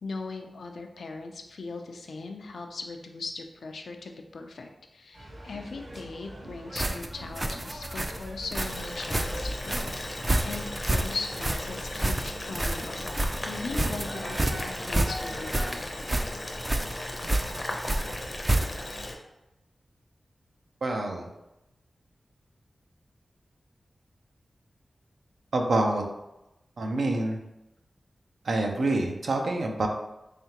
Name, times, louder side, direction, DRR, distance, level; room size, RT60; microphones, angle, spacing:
voice 1, 0.0-13.0 13.4-15.9, left 3 dB, 85° left, 4 dB, 0.4 m, -39 dB
sound 1, 5.1-15.7, equal, 45° right, 0.8 m, -44 dB
sound 2, 6.8-19.0, right 1 dB, 25° right, 0.4 m, -29 dB
Boiling, 8.5-19.1, left 1 dB, 30° left, 0.6 m, -36 dB
voice 2, 20.8-21.3 25.5-26.0 26.8-27.4 28.4-29.9, right 2 dB, 80° right, 2 dB, 0.6 m, -26 dB
3.7 x 3.3 x 2.9 m, 0.92 s
wide cardioid pair, 75°, 0 cm